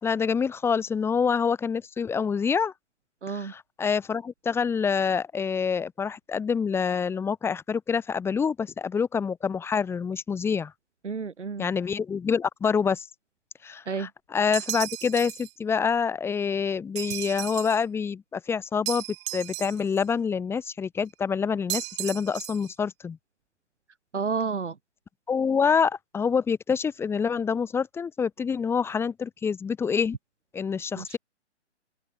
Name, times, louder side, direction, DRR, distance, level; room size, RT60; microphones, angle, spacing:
voice 1, 0.0-2.7 3.3-10.7 11.6-13.1 13.6-19.0 19.3-23.2 25.3-30.1 30.5-31.2, left 6 dB, 5° left, 2.9 m, -26 dB
voice 2, 3.2-3.5 11.0-11.7 13.9-14.1 24.1-24.7 31.0-31.2, right 5 dB, 75° right, 3.0 m, -30 dB
sound 1, 14.5-15.5 17.0-17.8 18.9-20.0 21.7-22.7, right 25 dB, 25° right, 3.3 m, -35 dB
open air
hypercardioid pair, 150°, 35 cm